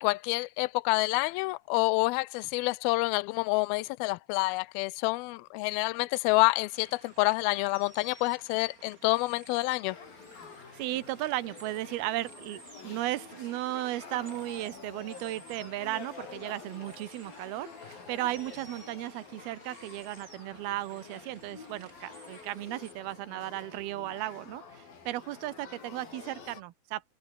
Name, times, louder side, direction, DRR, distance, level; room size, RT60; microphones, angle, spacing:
voice 1, 0.0-10.0, left 22 dB, 85° left, 2.5 m, -28 dB
sound 1, 6.7-22.9, right 3 dB, 25° right, 3.9 m, -55 dB
Male speech man speaking / Child speech kid speaking / Conversation, 9.9-26.6, left 5 dB, 70° left, 6.5 m, -49 dB
voice 2, 10.7-27.0, right 16 dB, 90° right, 3.0 m, -35 dB
omnidirectional pair, 4.3 m